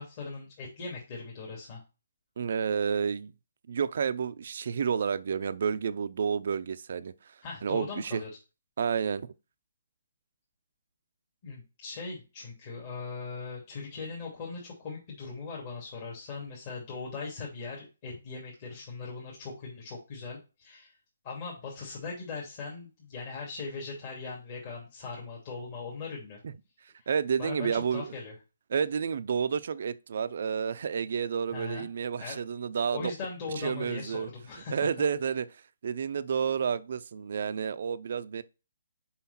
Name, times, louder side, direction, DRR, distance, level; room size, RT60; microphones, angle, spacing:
voice 1, 0.0-1.8 7.4-8.3 11.4-20.9 21.2-26.4 27.0-27.1 27.4-28.3 31.5-31.9 32.2-32.4 32.9-34.9, left 4 dB, 40° left, 2.7 m, -39 dB
voice 2, 2.4-3.3 3.7-7.1 7.6-8.2 8.8-9.3 27.1-28.1 28.7-33.1 33.6-34.3 34.7-38.4, right 6 dB, 55° right, 0.5 m, -30 dB
5.8 x 5.5 x 4.2 m
figure-of-eight pair, 145°, 0 cm